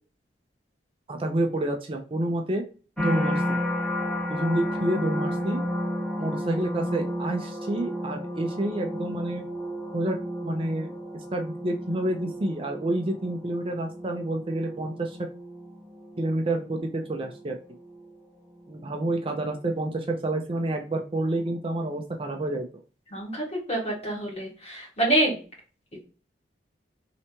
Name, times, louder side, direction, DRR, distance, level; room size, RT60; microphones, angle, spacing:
voice 1, 1.1-2.6 3.0-3.6 4.3-5.6 6.2-9.4 9.9-10.2 10.4-15.2 16.2-17.6 18.7-22.7, right 1 dB, 30° right, 4 dB, 0.4 m, -28 dB
sound 1, 3.0-18.2 18.7-19.1, equal, 5° left, 0.7 m, -33 dB
voice 2, 23.1-25.4, right 1 dB, 35° left, -3 dB, 1.6 m, -26 dB
3.3 x 2.9 x 2.8 m, 0.37 s
head